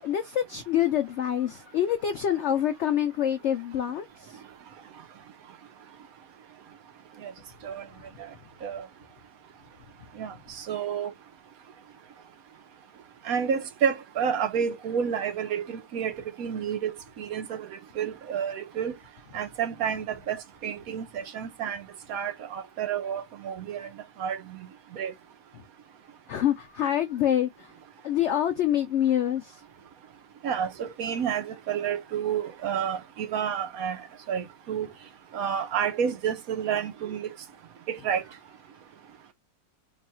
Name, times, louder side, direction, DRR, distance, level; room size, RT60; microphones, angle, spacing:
voice 1, 0.0-4.4 26.3-27.7 28.0-29.6, left 10 dB, 75° left, 0.6 m, -26 dB
voice 2, 10.2-11.1 13.2-17.7 18.0-19.0 19.3-21.8 22.1-23.9 24.2-24.6 24.9-25.1 30.4-34.0 34.3-34.9 35.3-37.3 37.9-38.2, right 8 dB, 70° right, 1.0 m, -30 dB
3.0 x 2.3 x 4.1 m
omnidirectional pair, 1.8 m